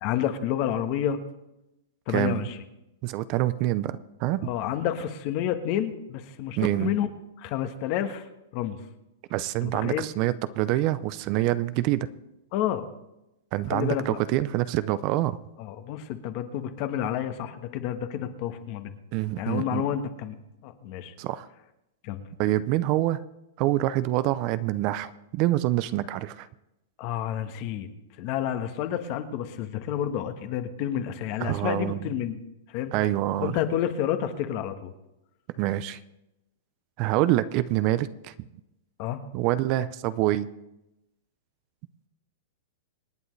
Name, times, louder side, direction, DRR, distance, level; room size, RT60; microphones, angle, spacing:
voice 1, 0.0-1.2 2.1-2.6 4.4-7.1 7.4-8.3 8.5-8.8 9.6-10.1 12.5-12.9 13.7-14.2 15.6-18.9 19.4-20.3 20.6-21.1 22.0-22.2 27.0-27.9 28.2-32.4 32.7-32.9 33.4-34.9 39.0-39.2, left 10 dB, 45° left, 8 dB, 1.3 m, -29 dB
voice 2, 2.1-2.5 3.0-4.5 6.6-7.0 9.3-12.1 13.5-15.4 19.1-19.9 21.2-21.5 22.4-23.2 23.6-26.5 31.4-32.0 32.9-33.6 35.6-36.0 37.0-38.3 39.3-40.5, right 15 dB, 40° right, 15 dB, 0.5 m, -26 dB
26.0 x 8.9 x 3.3 m, 0.93 s
hypercardioid pair, 140°, 0 cm